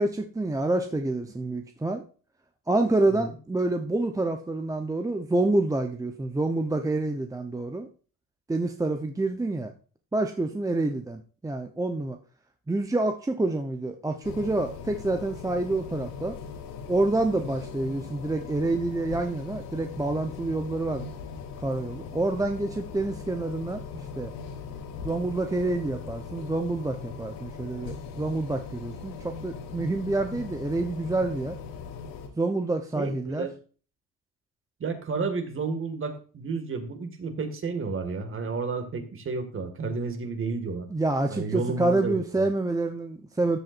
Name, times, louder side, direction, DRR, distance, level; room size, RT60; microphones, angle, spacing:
voice 1, 0.0-2.0 2.7-7.9 8.5-9.7 10.1-12.2 12.7-16.4 16.9-21.1 21.6-23.8 24.2-24.3 25.0-31.6 32.3-33.5 40.9-43.6, right 2 dB, 10° right, 6 dB, 0.9 m, -27 dB
sound 1, 14.2-32.3, left 5 dB, 85° left, 3.3 m, -40 dB
voice 2, 33.0-33.5 34.8-40.9 41.3-42.5, right 4 dB, 35° right, 7 dB, 2.1 m, -31 dB
13.5 x 7.6 x 2.6 m, 0.38 s
cardioid pair, 120°, 38 cm